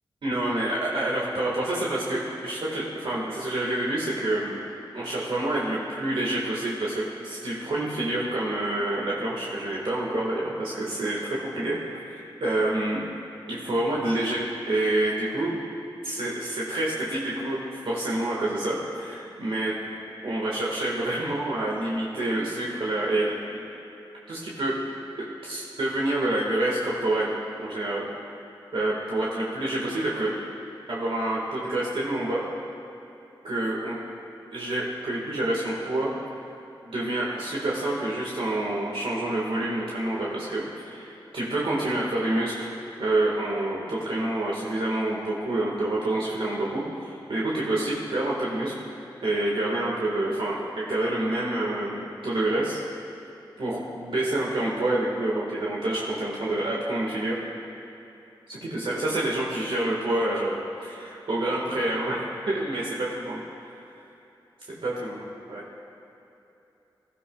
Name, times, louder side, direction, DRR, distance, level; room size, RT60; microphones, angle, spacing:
voice 1, 0.2-4.6 4.9-13.0 13.5-15.5 16.0-17.6 17.8-19.7 20.2-23.6 24.3-24.8 25.4-27.3 27.6-28.1 28.7-30.3 30.9-32.4 33.4-34.0 34.5-36.1 36.8-42.7 43.0-48.7 49.2-52.8 53.6-57.3 58.5-63.4 64.8-65.6, right 1 dB, 70° right, -5 dB, 1.7 m, -27 dB
16.5 x 12.5 x 2.4 m, 2.9 s
cardioid pair, 40°, 9 cm